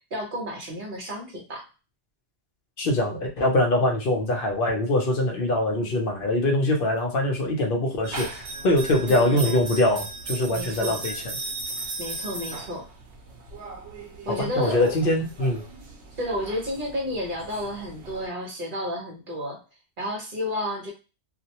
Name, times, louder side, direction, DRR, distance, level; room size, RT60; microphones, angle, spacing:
voice 1, 0.1-1.7 9.1-9.6 10.5-11.0 12.0-12.9 14.2-15.0 16.1-19.6 20.0-20.9, left 1 dB, 50° right, -1 dB, 1.0 m, -31 dB
voice 2, 2.8-11.1 14.4-15.6, left 1 dB, 55° left, 1 dB, 0.8 m, -23 dB
sound 1, 8.0-18.3, right 3 dB, 75° right, 0.9 m, -37 dB
2.5 x 2.1 x 2.8 m, 0.30 s
omnidirectional pair, 1.2 m